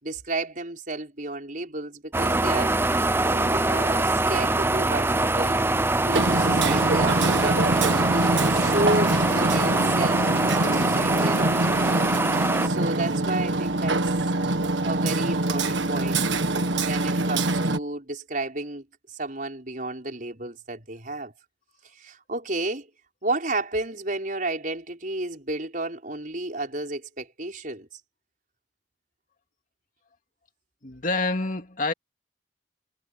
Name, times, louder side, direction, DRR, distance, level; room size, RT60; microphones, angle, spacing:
voice 1, 0.0-2.8 3.2-5.7 6.0-7.7 8.1-10.2 10.5-11.9 12.6-14.1 14.8-16.2 16.8-21.3 21.8-22.9 23.2-28.0, right 2 dB, 45° right, 5.8 m, -32 dB
sound 1, 2.1-12.7, right 2 dB, 10° right, 0.6 m, -23 dB
Hammer, 6.1-17.8, right 2 dB, 70° right, 1.6 m, -24 dB
voice 2, 30.8-31.9, left 3 dB, 45° left, 2.4 m, -27 dB
head